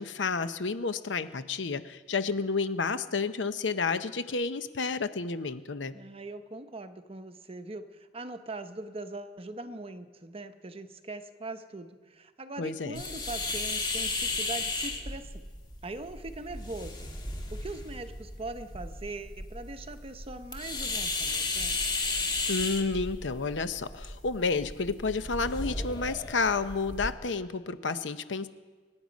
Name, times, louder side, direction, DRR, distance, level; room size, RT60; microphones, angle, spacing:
voice 1, 0.0-5.9 12.6-13.0 22.5-28.5, left 4 dB, 90° left, 12 dB, 0.8 m, -30 dB
voice 2, 5.9-15.4 15.8-17.1 17.5-21.9, right 2 dB, 30° right, 9 dB, 0.9 m, -41 dB
sound 1, 13.0-27.1, left 3 dB, 25° left, 1.6 m, -35 dB
25.5 x 9.9 x 5.2 m, 1.4 s
head